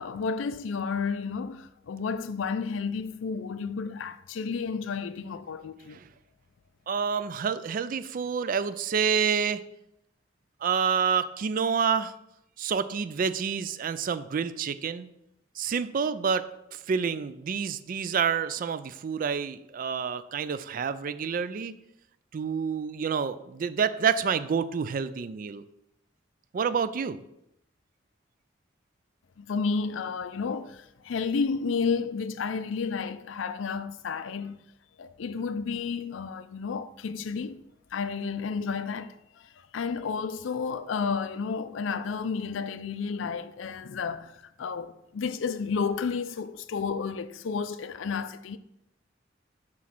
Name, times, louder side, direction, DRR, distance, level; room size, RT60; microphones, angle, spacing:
voice 1, 0.0-6.0 29.4-34.6 35.0-37.6 37.9-48.6, left 5 dB, 80° left, 0.4 m, -31 dB
voice 2, 6.9-9.6 10.6-12.1 12.6-15.1 15.6-16.5 16.7-21.7 22.3-25.6 26.5-27.2, right 6 dB, 45° right, 0.3 m, -28 dB
7.5 x 3.1 x 5.9 m
head